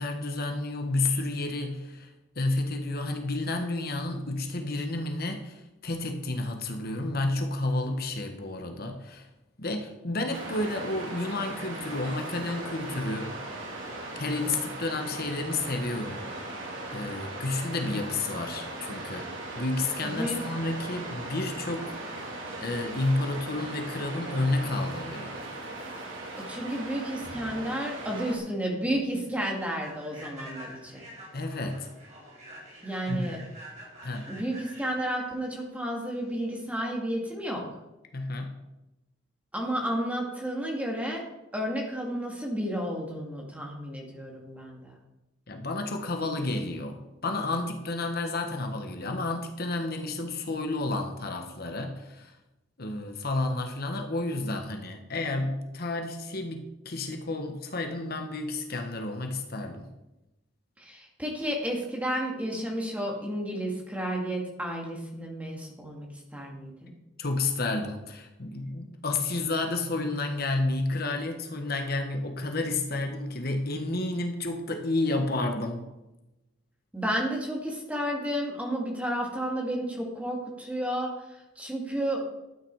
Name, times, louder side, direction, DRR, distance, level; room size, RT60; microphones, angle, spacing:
voice 1, 0.0-2.1 2.4-9.3 9.6-13.3 14.2-16.5 16.9-19.3 19.5-25.4 31.3-31.9 33.1-33.5 34.0-34.3 38.1-38.6 45.5-52.4 52.8-59.9 67.2-75.9, left 2 dB, 50° left, 4 dB, 1.3 m, -31 dB
Waves surf, 10.3-28.4, right 2 dB, 85° right, 2.9 m, -38 dB
voice 2, 20.0-20.4 26.5-31.0 32.8-33.4 34.3-37.6 39.5-41.2 41.5-45.0 60.8-66.1 66.3-66.9 76.9-82.2, right 1 dB, 5° right, -1 dB, 2.3 m, -32 dB
Human voice / Train, 28.4-36.7, equal, 35° right, 5.1 m, -48 dB
12.5 x 9.0 x 4.8 m, 0.97 s
head